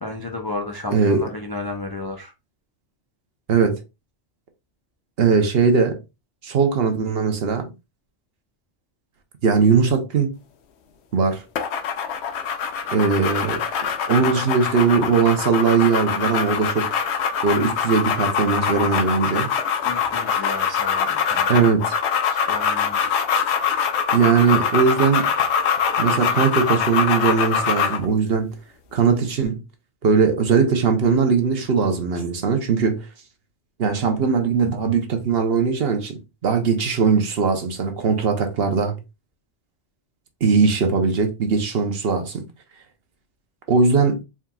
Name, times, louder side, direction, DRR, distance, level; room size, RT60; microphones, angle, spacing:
voice 1, 0.0-2.3 19.8-21.8 22.3-23.1, left 2 dB, 35° left, 0.4 m, -33 dB
voice 2, 0.9-1.3 3.5-3.8 5.2-6.0 6.4-7.7 9.4-10.3 11.1-11.4 12.9-13.6 14.1-16.9 17.4-19.5 21.5-22.0 24.1-25.3 26.0-28.5 28.9-29.6 30.0-33.1 33.8-39.0 40.4-42.5 43.7-44.2, right 5 dB, 60° right, 1.0 m, -20 dB
sound 1, 11.6-28.1, left 7 dB, 70° left, 0.9 m, -23 dB
4.3 x 3.7 x 2.3 m
omnidirectional pair, 1.2 m